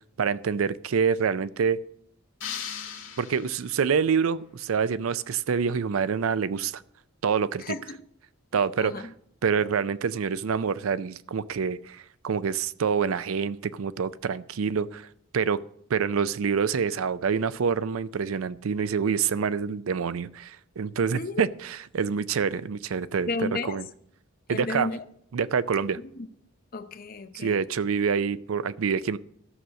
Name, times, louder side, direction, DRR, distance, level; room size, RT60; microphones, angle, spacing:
voice 1, 0.2-1.8 3.2-6.8 7.2-7.7 8.5-8.9 9.4-15.1 15.3-15.6 15.9-23.3 23.7-23.8 24.5-24.9 25.3-26.0 27.3-29.2, right 6 dB, 85° right, 0.5 m, -26 dB
sound 1, 2.4-3.9, left 8 dB, 70° left, 1.9 m, -38 dB
voice 2, 7.6-8.0 8.8-9.1 21.1-21.4 23.3-23.8 24.5-25.0 26.0-26.3 26.7-27.6, left 3 dB, 45° left, 0.7 m, -33 dB
13.0 x 6.2 x 6.4 m
head